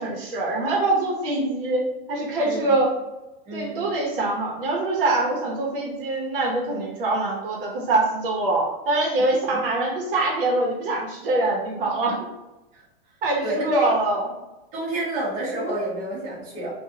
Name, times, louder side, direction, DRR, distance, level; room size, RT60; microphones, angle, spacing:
voice 1, 0.0-2.9 3.5-12.3 13.2-14.3, right 2 dB, 65° right, -1 dB, 0.9 m, -24 dB
voice 2, 2.4-2.8 3.5-3.8 9.5-9.7 12.7-12.8 13.4-13.9 14.7-16.7, right 1 dB, 25° right, -7 dB, 1.0 m, -30 dB
4.0 x 2.4 x 2.7 m, 1.0 s
supercardioid pair, 165°, 30 cm